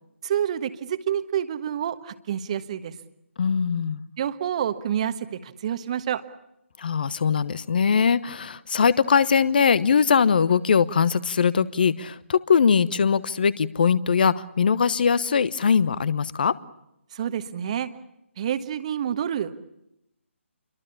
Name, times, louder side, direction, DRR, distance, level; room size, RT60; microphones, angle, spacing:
voice 1, 0.2-2.9 4.2-6.2 17.1-17.9 18.4-19.6, right 9 dB, 30° right, 11 dB, 1.3 m, -28 dB
voice 2, 3.4-4.0 6.8-16.5, left 6 dB, 45° left, 18 dB, 1.0 m, -21 dB
28.0 x 23.0 x 7.2 m, 0.84 s
figure-of-eight pair, 145°, 7 cm